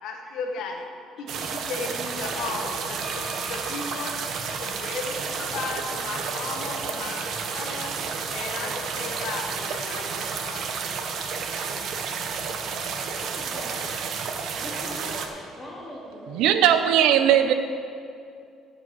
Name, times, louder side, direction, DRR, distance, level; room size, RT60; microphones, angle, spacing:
voice 1, 0.0-0.8 1.2-4.3 4.6-7.1 7.5-7.9 8.3-10.7, left 4 dB, 70° left, 2 dB, 1.3 m, -35 dB
sound 1, 1.3-15.3, right 5 dB, 55° right, 0.9 m, -31 dB
sound 2, 3.0-6.8, equal, 25° right, 2.4 m, -45 dB
voice 2, 13.2-14.0 14.6-16.8 17.2-17.5, left 1 dB, 15° left, -5 dB, 2.7 m, -42 dB
voice 3, 16.3-17.5, right 10 dB, 85° right, 9 dB, 0.6 m, -18 dB
14.5 x 5.1 x 6.2 m, 2.4 s
cardioid pair, 145°, 0 cm